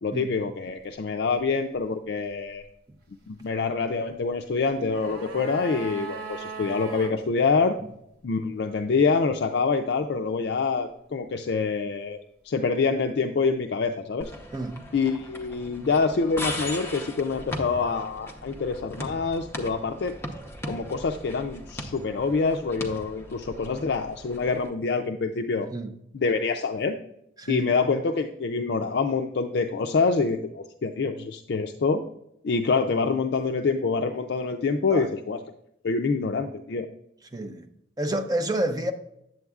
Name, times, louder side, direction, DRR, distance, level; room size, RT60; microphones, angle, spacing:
voice 1, 0.0-2.6 3.3-7.7 8.2-12.2 12.4-14.3 14.9-20.1 20.7-25.7 26.1-27.0 27.5-32.0 32.4-35.4 35.8-36.9, left 4 dB, 60° left, 0.4 m, -26 dB
sound 1, 4.6-7.2 7.4-7.5, right 3 dB, 55° right, 1.3 m, -38 dB
sound 2, 14.2-24.7, left 1 dB, 15° left, 0.8 m, -39 dB
voice 2, 37.3-37.7 38.0-38.9, right 1 dB, 20° right, 0.6 m, -29 dB
9.2 x 7.7 x 2.4 m
head